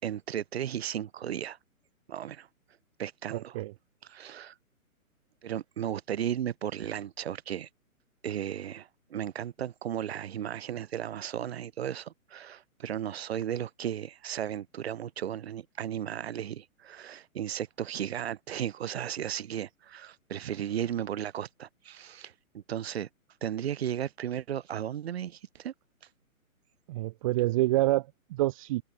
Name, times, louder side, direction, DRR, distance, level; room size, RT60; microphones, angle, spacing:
voice 1, 0.0-1.6 2.1-2.5 3.0-3.6 4.1-4.5 5.4-7.7 8.2-23.1 23.4-25.7, right 10 dB, 45° right, 6.2 m, -35 dB
voice 2, 3.3-3.7 26.9-28.8, right 17 dB, 25° right, 1.7 m, -27 dB
hypercardioid pair, 160°, 43 cm